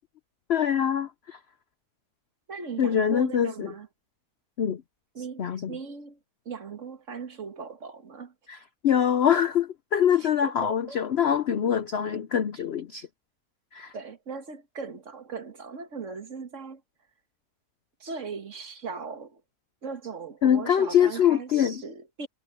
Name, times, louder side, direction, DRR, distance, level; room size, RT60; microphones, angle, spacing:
voice 1, 0.5-1.4 2.8-3.7 4.6-4.8 5.4-5.7 8.5-8.6 8.8-13.1 13.7-13.9 20.4-21.8, left 9 dB, 60° left, 0.6 m, -24 dB
voice 2, 2.5-3.9 5.2-6.2 6.5-8.3 10.2-11.0 13.9-16.8 18.0-19.4 19.8-22.3, right 5 dB, 50° right, 1.8 m, -39 dB
omnidirectional pair, 1.7 m